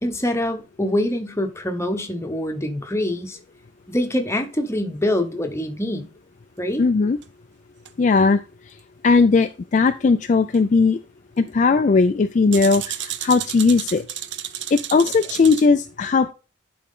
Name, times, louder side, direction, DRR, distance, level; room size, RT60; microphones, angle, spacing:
voice 1, 0.0-3.4 3.9-6.1 6.6-6.8, left 1 dB, 15° left, 1.0 m, -24 dB
voice 2, 6.8-7.2 8.0-8.4 9.0-11.0 11.4-14.1 14.7-16.3, left 4 dB, 40° left, 0.4 m, -18 dB
sound 1, 7.2-7.3 7.9-8.0 10.5-10.6 12.5-15.7, right 11 dB, 65° right, 0.6 m, -32 dB
10.5 x 4.3 x 3.7 m
head